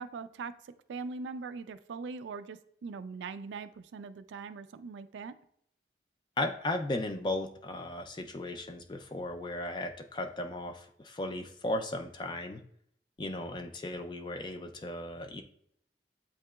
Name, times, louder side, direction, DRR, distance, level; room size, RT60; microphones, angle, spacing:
voice 1, 0.0-5.3, right 4 dB, 85° right, 12 dB, 0.3 m, -41 dB
voice 2, 6.4-12.6 13.2-15.4, left 1 dB, 25° left, 6 dB, 0.3 m, -36 dB
8.4 x 2.8 x 2.2 m, 0.71 s
head